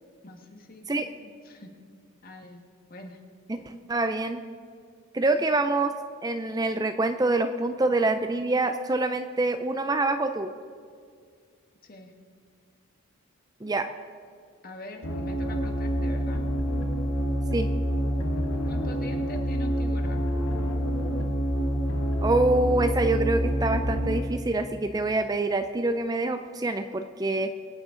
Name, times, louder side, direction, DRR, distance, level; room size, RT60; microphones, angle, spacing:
voice 1, 0.2-1.7 2.2-2.6 2.9-3.2 11.8-12.1 14.6-16.4 18.7-20.3, left 2 dB, 40° left, 3 dB, 1.5 m, -43 dB
voice 2, 3.9-4.4 5.1-5.9 6.2-10.5 13.6-13.9 17.5-17.7 22.2-27.5, right 2 dB, 20° right, 8 dB, 0.4 m, -25 dB
sound 1, 15.0-24.2, equal, 80° left, 1.3 m, -27 dB
23.5 x 9.7 x 3.8 m, 2.1 s
head